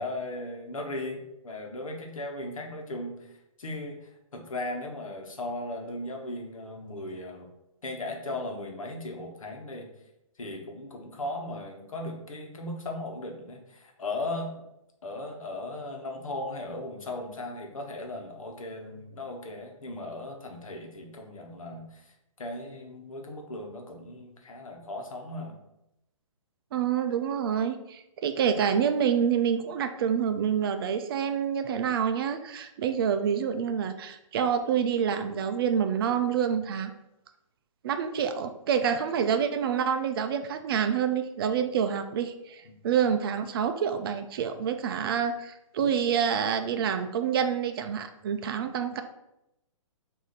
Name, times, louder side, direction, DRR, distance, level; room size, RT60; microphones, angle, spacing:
voice 1, 0.0-7.5 7.8-9.9 10.4-14.6 15.0-25.6 42.6-42.7, left 2 dB, 80° left, 2 dB, 1.1 m, -37 dB
voice 2, 26.7-36.9 37.8-49.0, right 7 dB, 45° right, 8 dB, 0.4 m, -27 dB
4.8 x 2.7 x 4.0 m, 0.86 s
hypercardioid pair, 135°, 17 cm